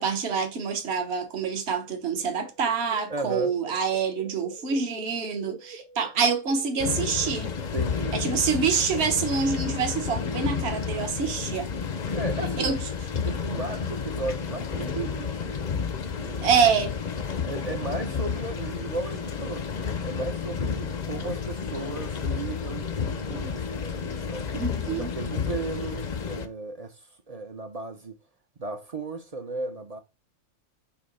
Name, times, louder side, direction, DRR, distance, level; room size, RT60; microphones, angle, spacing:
voice 1, 0.0-7.5 8.1-11.7 12.6-12.8 16.4-16.9 24.5-25.1, right 6 dB, 55° right, 1.4 m, -26 dB
sound 1, 1.9-8.4, right 1 dB, 90° right, 2.9 m, -47 dB
voice 2, 3.1-3.5 7.7-8.2 12.1-12.8 13.2-15.8 16.1-16.5 17.5-19.6 20.0-24.5 24.9-28.2 28.6-30.0, right 3 dB, 40° right, 0.6 m, -35 dB
sound 2, 6.8-26.5, left 6 dB, 45° left, 0.6 m, -31 dB
6.9 x 2.9 x 5.4 m
omnidirectional pair, 1.4 m